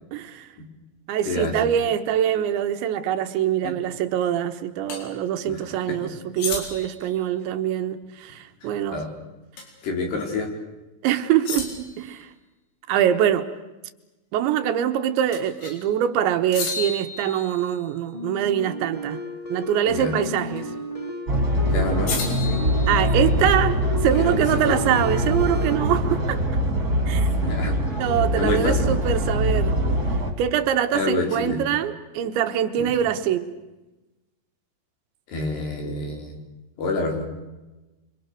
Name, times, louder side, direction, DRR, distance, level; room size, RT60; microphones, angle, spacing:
voice 1, 0.1-0.5 1.1-9.0 11.0-12.3 12.9-13.5 14.3-19.2 19.5-20.7 22.9-26.4 27.1-27.3 28.0-29.7 30.4-33.5, right 10 dB, 80° right, 8 dB, 3.5 m, -24 dB
sound 1, 4.9-5.0 6.4-7.0 9.6-9.8 10.2-10.3 11.4-12.0 15.3-15.8 16.5-17.9 20.2-20.6 22.1-23.4, left 4 dB, 85° left, 6.8 m, -33 dB
voice 2, 5.5-6.0 8.9-9.1 9.8-10.5 19.9-20.1 21.6-22.7 24.2-24.8 27.4-27.8 28.4-28.9 30.9-31.6 32.8-32.9 35.3-36.4 36.8-37.2, left 3 dB, 60° left, 2 dB, 6.6 m, -28 dB
sound 2, 18.1-25.8, left 3 dB, 20° left, 0.9 m, -33 dB
sound 3, 21.3-30.3, equal, 20° right, 3.5 m, -23 dB
28.0 x 26.5 x 6.6 m, 1.1 s
omnidirectional pair, 5.4 m